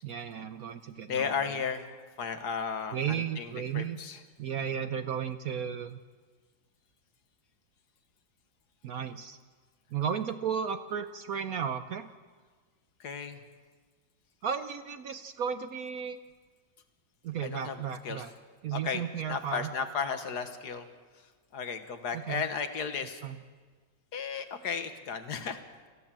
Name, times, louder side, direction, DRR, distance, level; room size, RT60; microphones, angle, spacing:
voice 1, 0.0-1.5 2.9-4.0 4.4-6.0 8.8-9.4 9.9-12.1 14.4-16.2 17.2-18.3 18.6-19.7 22.1-22.4 23.2-23.4, right 8 dB, 60° right, 10 dB, 1.0 m, -34 dB
voice 2, 1.1-1.9 2.2-4.2 13.0-13.4 17.4-18.2 18.7-20.9 21.1-23.2 24.1-25.6, left 6 dB, 60° left, 8 dB, 1.7 m, -35 dB
26.5 x 14.5 x 7.5 m, 1.5 s
omnidirectional pair, 2.0 m